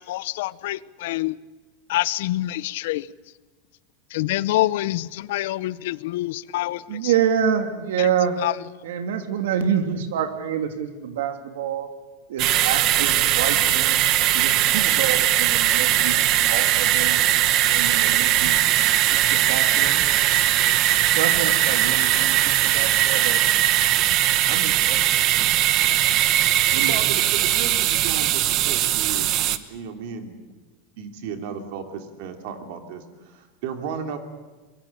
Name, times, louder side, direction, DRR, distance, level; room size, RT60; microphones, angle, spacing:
voice 1, 0.0-1.3 1.9-3.0 4.1-6.8 8.4-8.5, left 16 dB, 65° left, 0.7 m, -26 dB
voice 2, 6.9-8.4 8.8-11.9 12.3-14.0 14.3-16.2 16.5-17.2 17.7-18.6 18.8-20.1 21.2-23.4 24.4-25.0 26.7-27.2, right 8 dB, 90° right, 3.0 m, -27 dB
sound 1, 12.4-29.6, right 13 dB, 35° right, 1.0 m, -20 dB
voice 3, 26.9-30.4 31.0-34.2, right 6 dB, 55° right, 2.8 m, -34 dB
23.5 x 22.5 x 8.3 m
supercardioid pair, 175°, 0 cm